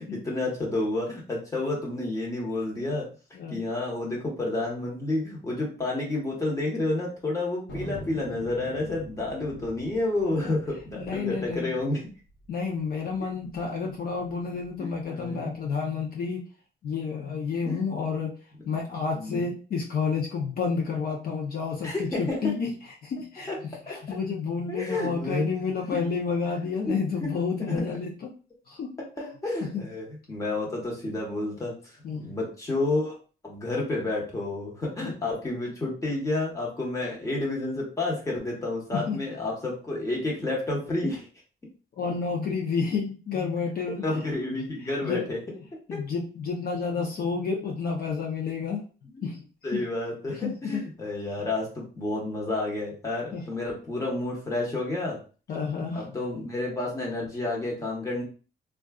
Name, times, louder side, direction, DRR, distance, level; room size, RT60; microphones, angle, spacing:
voice 1, 0.0-3.1 3.5-12.0 14.8-15.5 17.7-17.8 19.1-19.4 21.8-22.5 23.5-23.6 23.9-24.0 24.7-25.5 25.9-26.0 26.9-27.3 27.6-27.7 29.2-31.7 32.1-33.1 33.4-41.3 44.0-45.4 45.9-46.0 49.1-49.3 49.6-55.2 55.9-58.2, left 2 dB, 15° left, -3 dB, 1.0 m, -30 dB
Thunder, 7.7-12.5 12.8-12.9 13.1-13.6 14.1-15.3, equal, 80° left, 1.1 m, -43 dB
voice 2, 11.0-11.7 12.5-16.4 16.8-18.3 18.7-22.7 23.0-28.3 28.7-28.9 29.6-29.8 32.0-32.3 35.0-35.2 38.9-39.2 42.0-44.2 45.0-45.3 45.9-48.8 49.2-49.4 49.7-49.8 50.3-50.8 53.3-53.4 55.5-56.2, left 5 dB, 55° left, -1 dB, 0.6 m, -30 dB
3.7 x 2.3 x 2.3 m, 0.36 s
wide cardioid pair, 165°, 19 cm